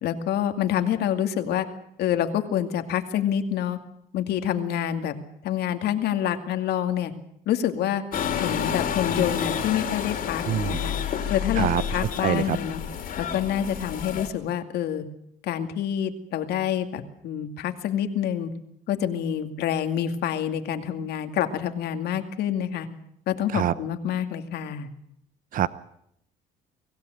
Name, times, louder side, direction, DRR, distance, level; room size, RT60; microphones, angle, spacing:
voice 1, 0.0-1.7 2.0-3.8 4.1-5.2 5.4-7.1 7.5-8.0 8.4-11.0 11.3-12.8 13.2-15.0 15.4-18.5 18.9-22.9 23.3-24.9, left 10 dB, 75° left, 7 dB, 2.3 m, -27 dB
sound 1, 8.1-14.3, left 8 dB, 55° left, 3.3 m, -29 dB
voice 2, 10.5-10.9 11.6-12.6 23.5-23.7 25.5-25.7, right 11 dB, 55° right, 17 dB, 0.8 m, -25 dB
24.5 x 16.0 x 9.3 m, 0.76 s
cardioid pair, 110°, 17 cm